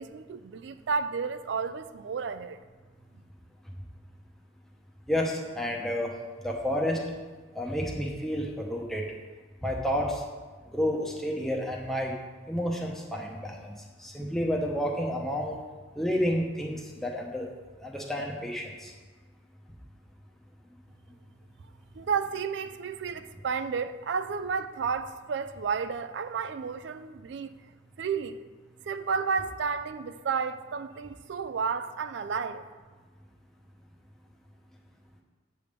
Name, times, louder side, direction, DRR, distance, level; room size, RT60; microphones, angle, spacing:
voice 1, 0.0-2.6 21.9-27.5 28.0-28.4 28.8-32.7, right 5 dB, 65° right, 0.4 m, -32 dB
voice 2, 5.1-6.1 6.4-7.1 7.5-9.0 9.6-10.2 10.7-12.1 12.5-15.6 16.0-17.5 17.8-18.9, equal, ahead, 0.8 m, -30 dB
8.3 x 3.5 x 6.6 m
head